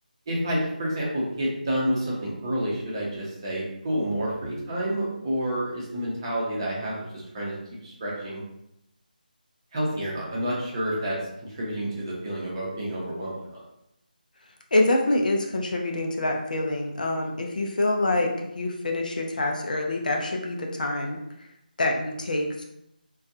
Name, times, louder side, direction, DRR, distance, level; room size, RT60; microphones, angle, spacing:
voice 1, 0.3-7.5 7.8-8.4 9.7-13.6, equal, 30° right, -5 dB, 0.7 m, -29 dB
voice 2, 14.7-21.2 21.8-22.6, left 2 dB, 60° left, 1 dB, 0.4 m, -26 dB
2.5 x 2.3 x 2.5 m, 0.80 s
figure-of-eight pair, 160°, 5 cm